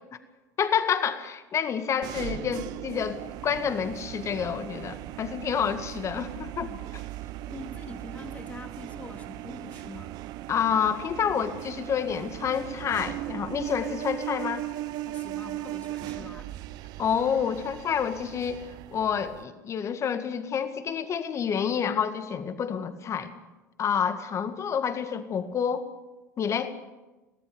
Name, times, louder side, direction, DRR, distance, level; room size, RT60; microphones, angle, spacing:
voice 1, 0.6-6.7 10.5-14.6 17.0-18.6 18.9-23.4 23.8-25.9 26.4-26.7, left 7 dB, 30° left, 10 dB, 1.9 m, -28 dB
sound 1, 2.0-19.4, right 15 dB, 45° right, 0.8 m, -38 dB
voice 2, 7.4-10.2 15.1-16.6, left 3 dB, 15° left, 5 dB, 2.4 m, -44 dB
23.0 x 17.5 x 7.1 m, 1.1 s
figure-of-eight pair, 70°, 9 cm